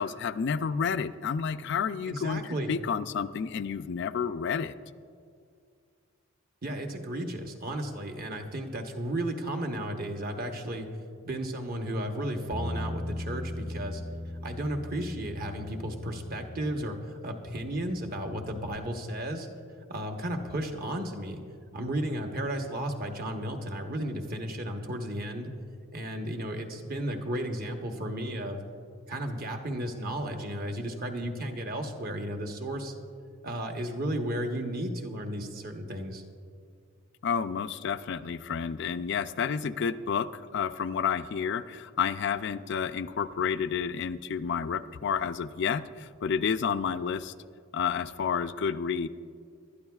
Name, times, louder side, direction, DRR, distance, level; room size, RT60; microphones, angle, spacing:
voice 1, 0.0-4.7 37.2-47.3 47.7-49.1, left 6 dB, 55° left, 12 dB, 0.4 m, -30 dB
voice 2, 2.1-2.8 6.6-10.9 11.3-14.0 14.4-17.0 17.2-19.5 19.9-21.4 21.7-25.5 25.9-28.6 29.1-32.9 33.4-36.2, right 1 dB, 45° right, 4 dB, 1.1 m, -34 dB
Bass guitar, 12.5-18.8, left 1 dB, 5° right, 0.5 m, -39 dB
22.0 x 12.5 x 2.4 m, 2.2 s
head